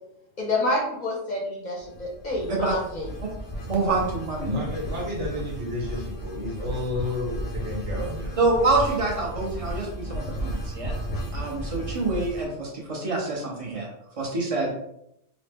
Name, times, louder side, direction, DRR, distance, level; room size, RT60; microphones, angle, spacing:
voice 1, 0.4-3.1, left 2 dB, 50° left, -2 dB, 0.7 m, -28 dB
sound 1, 1.8-12.5, equal, 90° left, 1.0 m, -34 dB
voice 2, 2.5-2.8 3.7-4.5 8.4-10.9 11.3-13.9 14.2-14.7, right 3 dB, 35° right, -1 dB, 0.7 m, -26 dB
voice 3, 4.4-8.4, left 2 dB, 75° right, -2 dB, 1.3 m, -31 dB
3.0 x 2.1 x 3.4 m, 0.76 s
omnidirectional pair, 1.2 m